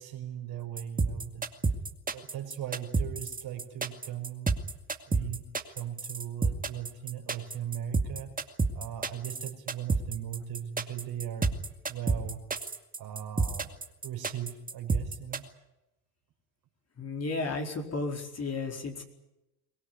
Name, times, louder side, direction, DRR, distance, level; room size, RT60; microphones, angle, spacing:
voice 1, 0.0-1.5 2.1-4.6 5.0-5.4 5.7-8.3 8.7-11.5 11.9-12.4 13.0-13.7 14.0-15.5, right 10 dB, 55° right, 4 dB, 5.1 m, -38 dB
sound 1, 0.8-15.4, right 4 dB, 20° right, 2.3 m, -29 dB
voice 2, 17.0-19.0, left 3 dB, 35° left, 3 dB, 4.6 m, -33 dB
23.5 x 18.0 x 9.7 m, 0.92 s
hypercardioid pair, 80°, 43 cm